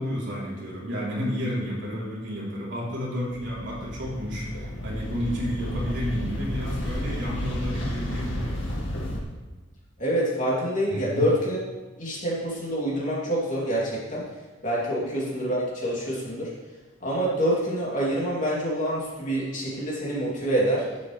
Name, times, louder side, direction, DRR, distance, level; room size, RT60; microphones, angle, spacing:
voice 1, 0.0-8.6 10.9-11.2 14.9-15.0, equal, 60° right, -6 dB, 3.2 m, -31 dB
sound 1, 3.2-9.2, equal, 65° left, 2.1 m, -31 dB
voice 2, 10.0-11.6 12.0-14.3 14.6-16.5 17.0-20.9, right 1 dB, 40° left, -5 dB, 2.9 m, -26 dB
11.0 x 8.7 x 3.3 m, 1.2 s
head